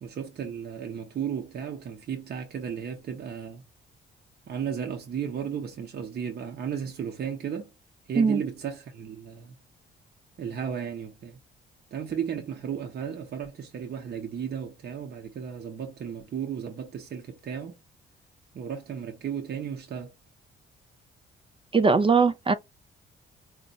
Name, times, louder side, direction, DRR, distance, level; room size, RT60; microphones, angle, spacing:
voice 1, 0.0-3.6 4.5-7.7 8.1-9.5 10.4-11.4 11.9-17.8 18.5-20.1, right 8 dB, 55° right, 0.9 m, -34 dB
voice 2, 21.7-22.5, right 4 dB, 25° right, 0.4 m, -20 dB
4.0 x 2.4 x 2.4 m
cardioid pair, 90°, 20 cm